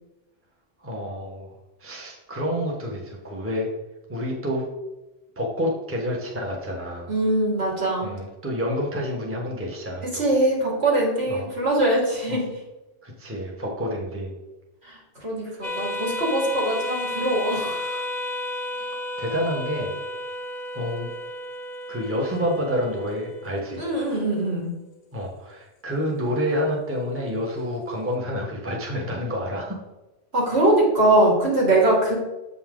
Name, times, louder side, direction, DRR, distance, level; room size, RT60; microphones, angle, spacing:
voice 1, 0.8-1.5 1.8-3.7 4.1-4.6 5.4-7.1 8.0-10.2 11.3-11.5 12.3-12.4 13.0-14.3 15.4-15.7 18.8-18.9 19.2-19.9 20.7-21.1 21.9-23.9 25.1-29.8, equal, 10° right, -1 dB, 1.1 m, -28 dB
voice 2, 7.1-8.1 10.1-12.4 14.8-18.0 23.8-24.7 30.3-32.1, right 1 dB, 60° right, -4 dB, 2.7 m, -22 dB
sound 1, 15.6-24.6, left 1 dB, 45° left, 0.8 m, -33 dB
7.7 x 5.5 x 3.8 m, 1.0 s
omnidirectional pair, 1.2 m